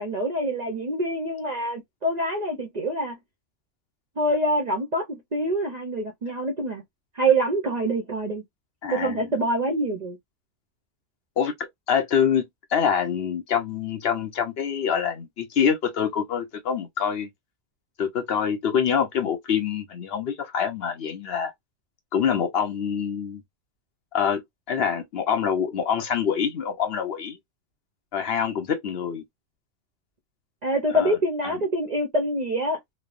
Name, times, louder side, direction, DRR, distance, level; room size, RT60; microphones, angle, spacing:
voice 1, 0.0-3.2 4.2-6.8 7.1-8.4 8.9-10.2 30.6-32.8, right 1 dB, 50° right, 0.5 m, -25 dB
voice 2, 8.8-9.1 11.4-17.3 18.0-21.5 22.1-23.4 24.1-24.4 24.7-27.4 28.1-29.2 30.9-31.2 31.4-31.5, left 7 dB, 60° left, 0.8 m, -25 dB
3.1 x 2.0 x 2.4 m
omnidirectional pair, 1.3 m